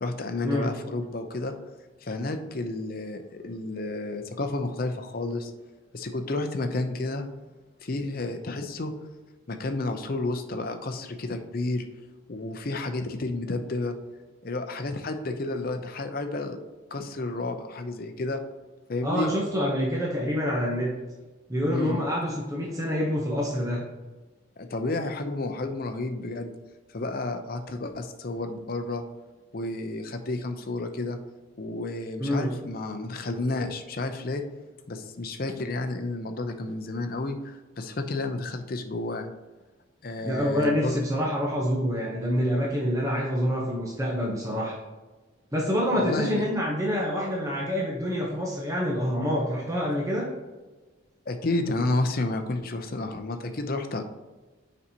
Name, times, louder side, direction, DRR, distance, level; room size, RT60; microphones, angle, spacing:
voice 1, 0.0-1.5 2.0-5.5 5.9-7.3 7.8-8.9 9.5-11.8 12.3-13.9 14.4-16.6 16.9-18.4 18.9-19.3 21.7-22.0 24.6-26.5 26.9-29.0 29.5-31.2 31.6-34.4 34.9-39.3 40.0-41.0 45.9-46.5 51.3-54.0, left 2 dB, 45° left, 6 dB, 0.6 m, -31 dB
voice 2, 19.0-20.9 21.5-23.8 32.2-32.5 40.2-44.8 45.5-50.3, equal, 15° right, -3 dB, 0.8 m, -27 dB
7.0 x 5.3 x 2.8 m, 1.2 s
head